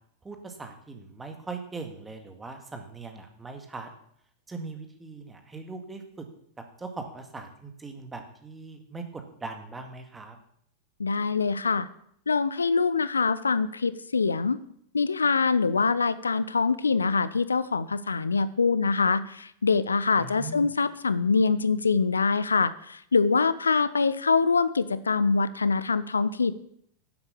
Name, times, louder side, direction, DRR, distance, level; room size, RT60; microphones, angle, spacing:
voice 1, 0.2-3.9 4.5-6.3 6.8-10.4 20.2-20.7, right 3 dB, 15° right, 5 dB, 2.0 m, -40 dB
voice 2, 11.0-11.9 12.3-14.6 14.9-26.5, left 4 dB, 75° left, 16 dB, 0.5 m, -24 dB
11.5 x 8.0 x 6.9 m, 0.68 s
figure-of-eight pair, 90°, 0 cm